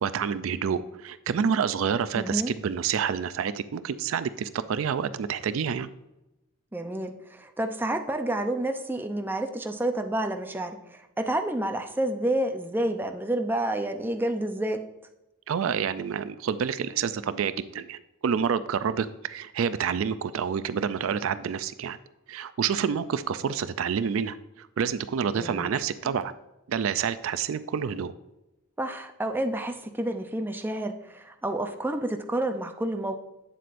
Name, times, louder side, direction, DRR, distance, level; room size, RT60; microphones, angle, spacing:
voice 1, 0.0-5.9 15.5-22.0 22.3-26.3 26.7-28.1, right 7 dB, 70° right, 13 dB, 0.4 m, -28 dB
voice 2, 2.1-2.5 6.7-14.8 25.3-25.8 28.8-33.1, right 1 dB, 10° right, 5 dB, 0.5 m, -29 dB
8.4 x 7.6 x 2.5 m, 0.95 s
head